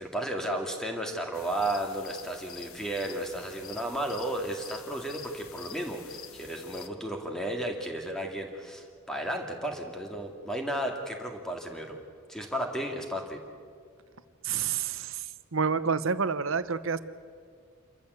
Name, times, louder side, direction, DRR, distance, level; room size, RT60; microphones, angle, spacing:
voice 1, 0.0-12.0 12.3-13.4, right 1 dB, 5° left, 2 dB, 2.3 m, -33 dB
sound 1, 1.3-6.9, left 8 dB, 80° left, 1.2 m, -47 dB
voice 2, 14.4-15.2 15.5-17.0, right 5 dB, 70° right, 14 dB, 0.9 m, -28 dB
28.0 x 14.0 x 8.1 m, 2.1 s
head